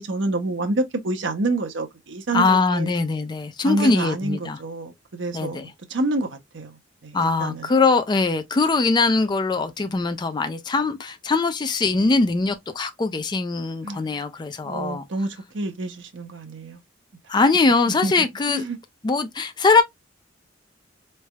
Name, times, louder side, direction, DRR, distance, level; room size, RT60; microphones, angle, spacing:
voice 1, 0.0-2.9 3.6-7.7 13.8-14.1 14.6-16.8 18.0-18.1 18.5-18.8, right 2 dB, 65° right, 0.7 m, -28 dB
voice 2, 2.3-4.6 5.3-5.7 7.1-15.0 17.3-18.7 19.0-19.8, left 3 dB, 25° left, 0.4 m, -21 dB
4.1 x 3.3 x 2.3 m
head